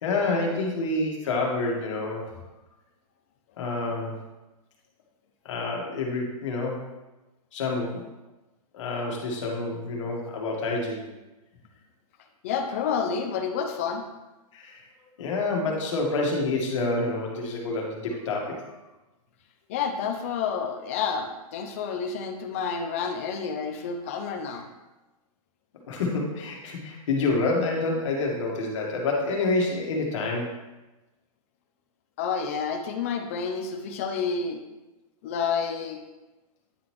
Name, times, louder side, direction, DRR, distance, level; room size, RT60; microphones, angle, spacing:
voice 1, 0.0-2.3 3.6-4.1 5.4-6.9 7.5-8.0 8.7-11.1 14.5-14.8 15.2-18.7 25.9-30.5, left 3 dB, 55° left, -1 dB, 1.6 m, -28 dB
voice 2, 12.4-14.0 19.7-24.7 32.2-34.6 35.2-36.0, left 6 dB, 25° left, 5 dB, 0.4 m, -29 dB
9.4 x 3.9 x 3.1 m, 1.1 s
hypercardioid pair, 175°, 19 cm